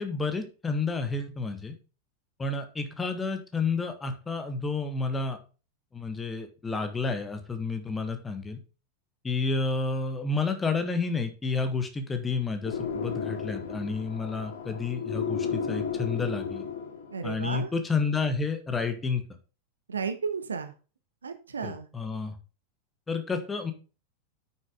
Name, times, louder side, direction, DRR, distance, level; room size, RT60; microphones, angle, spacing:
voice 1, 0.0-1.7 2.4-5.4 5.9-8.6 9.2-16.6 17.2-19.2 21.6-22.4 23.1-23.7, left 4 dB, 15° left, 7 dB, 1.5 m, -30 dB
sound 1, 12.7-17.3, left 6 dB, 60° left, 1.3 m, -33 dB
voice 2, 17.1-17.7 19.9-20.7 21.2-21.9, right 5 dB, 70° right, 8 dB, 1.2 m, -33 dB
9.4 x 6.6 x 3.7 m, 0.34 s
figure-of-eight pair, 90°, 0 cm